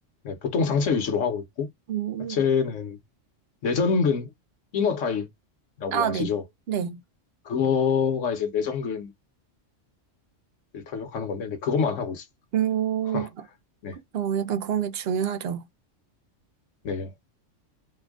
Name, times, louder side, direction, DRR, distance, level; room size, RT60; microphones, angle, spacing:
voice 1, 0.2-1.7 2.3-3.0 3.6-4.3 4.7-5.3 5.8-6.4 7.4-9.1 10.7-12.2 13.1-13.3 13.8-13.9 16.8-17.1, left 6 dB, 80° left, 1.4 m, -26 dB
voice 2, 1.9-2.4 5.9-6.3 6.7-7.0 12.5-13.3 14.1-15.6, right 9 dB, 60° right, 0.8 m, -27 dB
4.3 x 2.3 x 3.5 m
omnidirectional pair, 1.3 m